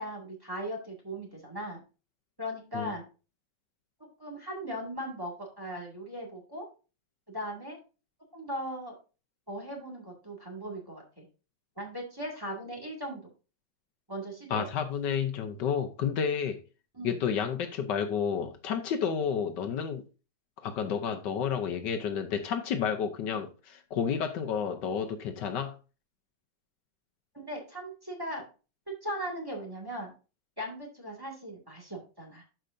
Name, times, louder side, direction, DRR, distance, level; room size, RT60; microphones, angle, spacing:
voice 1, 0.0-1.8 2.4-3.1 4.2-6.7 7.3-7.8 8.3-8.9 9.5-11.3 11.8-13.2 14.1-14.6 16.9-17.2 27.3-28.4 28.9-30.1 30.6-32.4, equal, 10° right, 1.9 m, -38 dB
voice 2, 14.5-16.6 17.0-20.0 20.6-25.7, left 7 dB, 70° left, 1.4 m, -31 dB
12.0 x 5.1 x 2.6 m
omnidirectional pair, 2.0 m